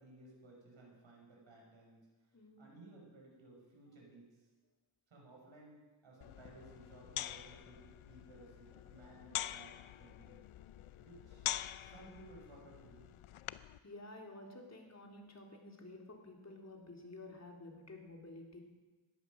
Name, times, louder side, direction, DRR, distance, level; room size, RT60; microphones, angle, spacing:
voice 1, 0.0-4.5 5.1-10.4 11.0-13.1, right 2 dB, 70° right, -1 dB, 6.3 m, -58 dB
voice 2, 2.3-2.6 13.8-18.6, left 2 dB, 35° left, 0 dB, 3.6 m, -52 dB
sound 1, 6.2-13.8, left 12 dB, 90° left, 0.6 m, -45 dB
17.0 x 11.5 x 6.4 m, 1.2 s
cardioid pair, 75°, 47 cm